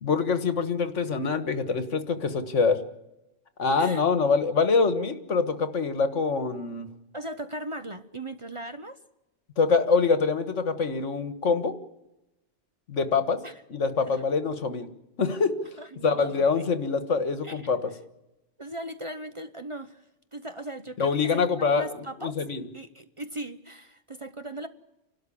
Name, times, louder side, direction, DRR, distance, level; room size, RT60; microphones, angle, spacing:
voice 1, 0.0-2.8 3.6-6.9 9.6-11.7 12.9-13.4 13.7-14.9 15.2-15.6 16.0-17.9 21.0-21.9 22.2-22.6, left 4 dB, 75° left, 9 dB, 1.8 m, -25 dB
voice 2, 7.1-9.0 13.4-13.5 14.0-14.2 15.8-16.6 17.4-17.7 18.6-20.0 20.3-21.4 21.8-22.3 22.7-24.7, right 1 dB, 30° right, 9 dB, 0.9 m, -38 dB
29.0 x 12.5 x 8.5 m, 0.95 s
omnidirectional pair, 1.3 m